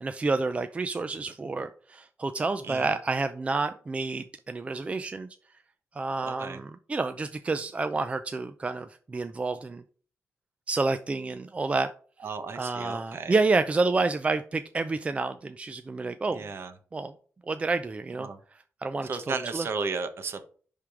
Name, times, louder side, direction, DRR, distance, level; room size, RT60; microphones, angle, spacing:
voice 1, 0.0-5.3 6.0-9.8 10.7-11.9 12.6-16.4 16.9-17.1 17.5-18.3 18.8-19.7, right 3 dB, 25° right, 0.5 m, -29 dB
voice 2, 2.6-3.0 6.2-6.6 12.2-13.4 16.3-16.7 18.2-18.4 19.0-20.5, right 4 dB, 55° right, 1.1 m, -34 dB
10.5 x 3.7 x 4.9 m
wide cardioid pair, 120°, 5 cm